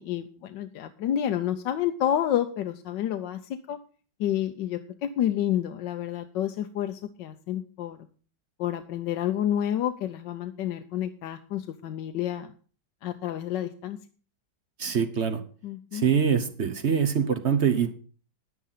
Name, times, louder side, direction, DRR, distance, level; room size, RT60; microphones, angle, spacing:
voice 1, 0.0-3.4 3.7-3.8 4.2-8.0 8.6-12.5 13.0-14.0 15.6-16.0, left 11 dB, 80° left, 8 dB, 1.4 m, -29 dB
voice 2, 14.8-15.4 15.9-18.0, right 7 dB, 45° right, 8 dB, 1.1 m, -24 dB
10.5 x 9.4 x 5.6 m, 0.40 s
omnidirectional pair, 1.9 m